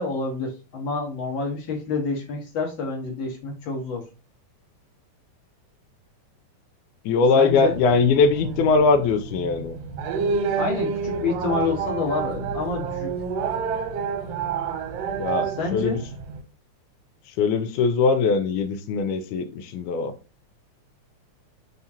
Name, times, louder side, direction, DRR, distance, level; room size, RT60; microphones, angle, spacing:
voice 1, 0.0-4.0 7.3-7.7 10.6-13.1 15.6-16.0, left 4 dB, 50° left, 1.5 m, -28 dB
voice 2, 7.1-9.8 15.2-16.0 17.3-20.2, left 4 dB, 90° left, 2.1 m, -21 dB
sound 1, 7.5-16.4, right 6 dB, 70° right, 1.6 m, -29 dB
4.7 x 3.6 x 2.8 m
omnidirectional pair, 3.5 m